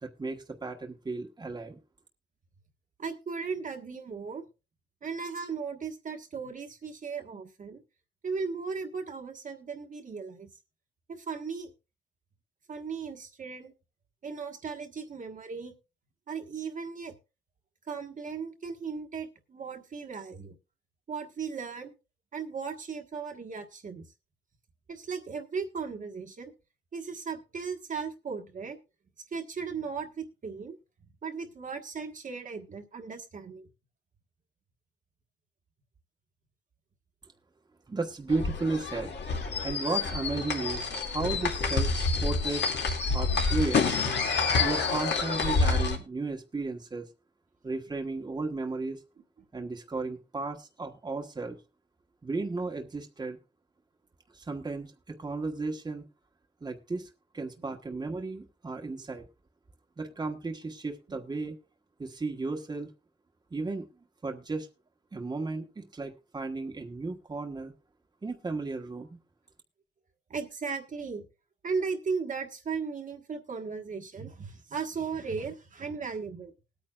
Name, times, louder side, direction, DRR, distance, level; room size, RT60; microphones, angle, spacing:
voice 1, 0.0-1.8 37.9-39.1 39.6-41.9 42.2-42.6 43.1-43.9 44.6-47.0 47.6-49.0 49.5-51.6 52.2-53.4 54.3-56.0 56.6-59.3 60.0-61.6 62.0-62.9 63.5-63.9 64.2-64.7 65.1-67.7 68.2-69.2, right 3 dB, 20° right, 2 dB, 1.3 m, -34 dB
voice 2, 3.0-4.5 5.0-7.8 8.2-10.5 11.1-11.7 12.7-13.7 14.2-15.7 16.3-17.2 17.9-20.5 21.1-21.9 22.3-24.0 24.9-26.5 26.9-28.8 29.3-30.8 31.2-33.7 58.8-58.9 70.3-71.3 71.6-76.5, right 5 dB, 40° right, 3 dB, 1.4 m, -36 dB
sound 1, 38.3-46.0, left 4 dB, 60° left, 2.4 m, -28 dB
20.5 x 9.0 x 2.4 m, 0.31 s
cardioid pair, 125°, 20 cm